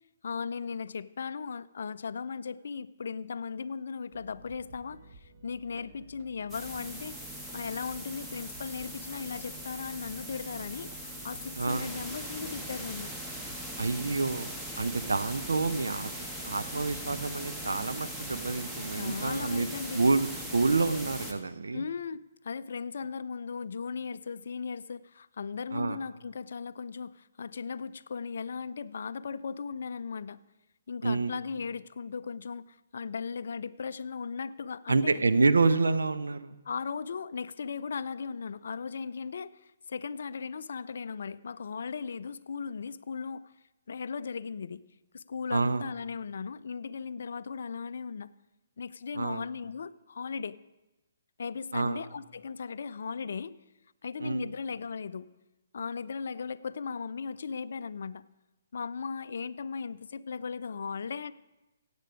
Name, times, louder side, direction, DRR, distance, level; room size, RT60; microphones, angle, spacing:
voice 1, 0.2-7.1 7.5-13.1 18.9-20.0 21.7-30.4 30.9-35.2 36.6-43.5 43.9-44.8 45.1-48.3 48.8-50.6 51.4-53.5 54.0-55.3 55.7-58.2 58.7-61.3, left 5 dB, 55° left, 16 dB, 0.4 m, -37 dB
sound 1, 4.1-18.1, right 2 dB, 30° right, 1.3 m, -55 dB
sound 2, 6.5-21.3, equal, 5° right, 1.1 m, -40 dB
voice 2, 11.6-11.9 13.8-14.5 14.8-16.1 16.4-19.7 19.9-21.8 25.7-26.0 31.0-31.3 34.9-36.5 45.5-45.8 49.1-49.4 51.7-52.0 54.2-54.4, right 3 dB, 65° right, 11 dB, 0.6 m, -28 dB
16.5 x 8.2 x 4.9 m, 1.0 s
figure-of-eight pair, 130°, 0 cm